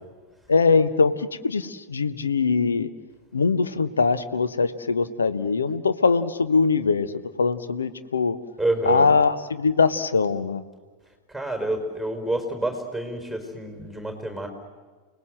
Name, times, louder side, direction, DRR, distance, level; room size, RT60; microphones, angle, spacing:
voice 1, 0.5-2.9 3.3-8.4 8.9-10.6, left 4 dB, 75° left, 12 dB, 1.1 m, -22 dB
voice 2, 8.6-9.1 11.3-14.5, right 1 dB, 5° left, 5 dB, 4.8 m, -28 dB
30.0 x 19.5 x 7.8 m, 1.4 s
figure-of-eight pair, 90°, 0 cm